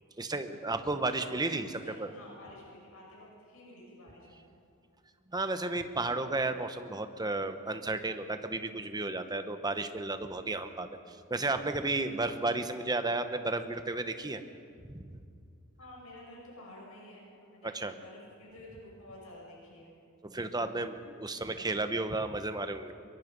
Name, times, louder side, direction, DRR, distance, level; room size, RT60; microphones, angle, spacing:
voice 1, 0.2-2.1 5.3-14.4 14.9-15.0 17.6-18.0 20.2-22.9, right 2 dB, 20° right, 9 dB, 1.1 m, -33 dB
voice 2, 1.5-4.5 15.8-19.9, left 1 dB, 75° left, -2 dB, 6.0 m, -51 dB
23.5 x 22.0 x 5.4 m, 2.3 s
head